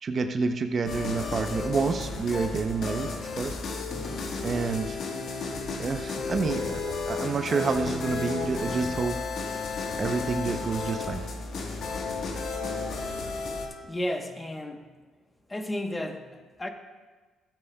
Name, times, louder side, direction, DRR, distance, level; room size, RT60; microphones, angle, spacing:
voice 1, 0.0-3.6 4.4-5.0 5.8-9.2 9.4-9.5 10.0-11.2, right 4 dB, 45° right, 8 dB, 0.6 m, -28 dB
sound 1, 0.9-13.7, left 4 dB, 60° left, 1.3 m, -33 dB
voice 2, 13.8-14.9 15.5-16.3 16.6-16.7, left 1 dB, 20° left, 5 dB, 1.0 m, -32 dB
13.5 x 8.7 x 2.3 m, 1.4 s
supercardioid pair, 70°, 0 cm